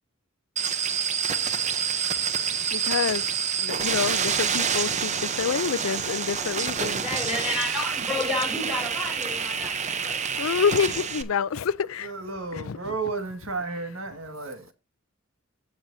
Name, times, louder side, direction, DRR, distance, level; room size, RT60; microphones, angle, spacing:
sound 1, 0.6-11.2, right 7 dB, 35° right, 0.7 m, -27 dB
voice 1, 2.7-3.2 3.6-7.0 10.4-12.1 12.5-12.9, left 6 dB, 80° left, 0.5 m, -27 dB
voice 2, 6.8-10.2, left 1 dB, 5° right, 5.0 m, -31 dB
voice 3, 12.0-14.7, right 4 dB, 75° right, 1.8 m, -33 dB
15.5 x 6.2 x 2.7 m
head